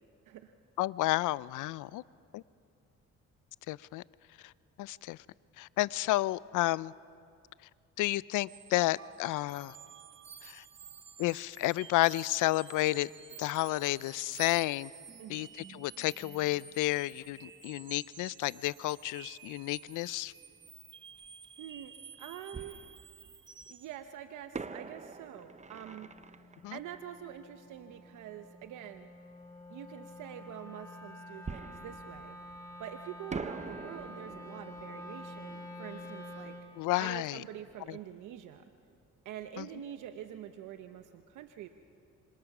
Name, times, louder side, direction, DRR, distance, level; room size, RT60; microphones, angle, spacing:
voice 1, 0.8-2.0 2.3-2.4 3.7-4.0 4.4-4.5 4.8-5.2 5.6-6.9 8.0-9.8 10.4-10.6 11.2-13.1 13.4-14.9 15.3-20.3 26.6-26.8 36.8-37.4 37.9-38.0 39.6-39.7, left 17 dB, 85° left, 21 dB, 0.5 m, -31 dB
sound 1, 8.5-24.0, right 6 dB, 40° right, 1.1 m, -51 dB
Fireworks, 21.2-21.3 22.5-23.6 24.5-28.0 31.4-32.9 33.3-37.8 38.1-38.2 38.7-38.9, right 4 dB, 25° right, 0.7 m, -45 dB
voice 2, 21.6-21.9 22.2-22.8 23.7-26.1 26.7-29.1 29.7-32.4 32.8-36.6 37.0-38.6 39.2-41.7, right 10 dB, 85° right, 8 dB, 0.9 m, -46 dB
Wind instrument woodwind instrument, 25.1-36.7, left 1 dB, 10° left, 5.9 m, -48 dB
26.5 x 26.0 x 6.0 m, 2.4 s
cardioid pair, 90°, 30 cm